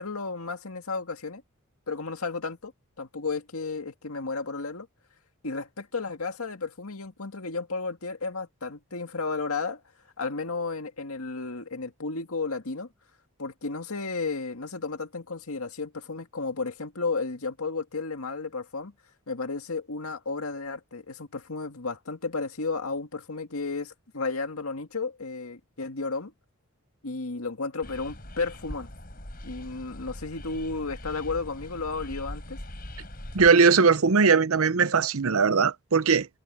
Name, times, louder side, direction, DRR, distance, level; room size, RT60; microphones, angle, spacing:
voice 1, 0.0-1.4 1.9-2.7 3.0-4.9 5.4-9.8 10.2-12.9 13.4-18.9 19.3-26.3 27.0-28.9 29.4-32.6, left 4 dB, 80° left, 2.0 m, -33 dB
sound 1, 27.8-33.5, left 1 dB, 40° left, 5.4 m, -41 dB
voice 2, 33.3-36.3, right 5 dB, 75° right, 0.8 m, -20 dB
head